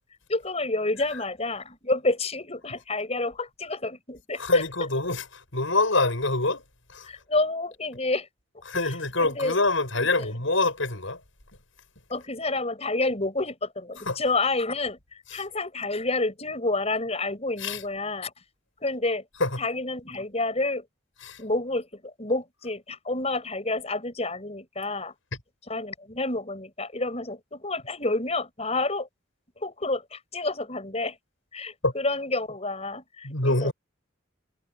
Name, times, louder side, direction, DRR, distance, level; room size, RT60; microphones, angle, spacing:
voice 1, 0.3-4.6 7.0-8.3 8.8-9.6 9.9-10.3 12.1-18.3 18.8-19.3 19.6-20.9 21.4-25.1 25.7-29.1 29.6-31.2 31.5-33.7, left 2 dB, 30° left, 6.6 m, -29 dB
voice 2, 4.4-6.6 6.9-7.1 8.7-11.2 14.1-14.2 17.6-17.8 19.4-19.5 21.2-21.4 31.8-31.9 33.2-33.7, left 2 dB, 75° left, 7.2 m, -25 dB
head